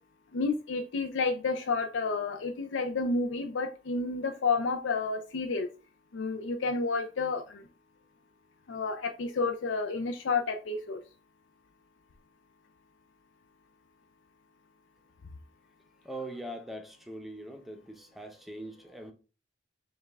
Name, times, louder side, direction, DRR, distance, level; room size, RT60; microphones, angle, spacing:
voice 1, 0.3-5.7 6.1-7.6 8.7-11.0, left 4 dB, 85° left, 0.4 m, -30 dB
voice 2, 16.0-19.1, right 1 dB, ahead, 0.5 m, -42 dB
5.2 x 2.2 x 3.4 m
head